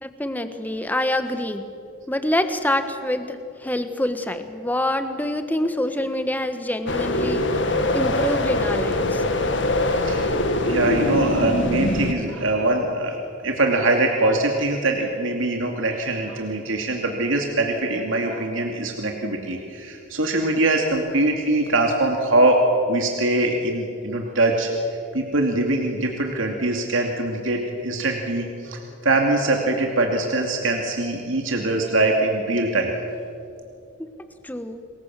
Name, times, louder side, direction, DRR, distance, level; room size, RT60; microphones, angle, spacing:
voice 1, 0.0-1.6 2.1-7.5 7.9-9.2 34.4-34.8, left 1 dB, 10° left, 9 dB, 1.3 m, -26 dB
sound 1, 6.9-12.1, left 1 dB, 65° left, 2.0 m, -23 dB
voice 2, 9.8-13.2 13.4-32.9, right 2 dB, 80° right, 2 dB, 2.5 m, -23 dB
28.0 x 21.5 x 7.6 m, 2.6 s
head